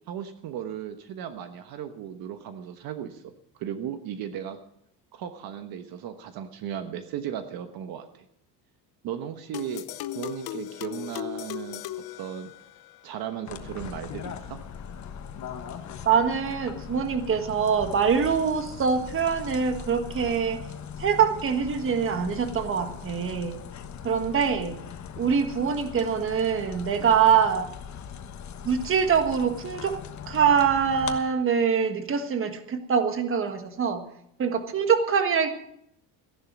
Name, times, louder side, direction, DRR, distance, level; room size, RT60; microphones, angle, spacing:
voice 1, 0.1-4.6 5.1-8.2 9.0-9.9 10.1-11.8 12.2-12.5 13.0-14.6, right 9 dB, 55° right, 8 dB, 1.2 m, -36 dB
sound 1, 9.5-13.0, left 14 dB, 60° left, 0.8 m, -37 dB
sound 2, 13.5-31.2, left 8 dB, 40° left, 1.3 m, -40 dB
voice 2, 16.0-20.6 21.0-23.6 24.0-24.8 25.2-27.7 28.6-30.0 30.3-34.0 34.4-35.5, right 6 dB, 30° right, 7 dB, 1.5 m, -24 dB
15.0 x 11.0 x 6.1 m, 0.74 s
cardioid pair, 150°, 43 cm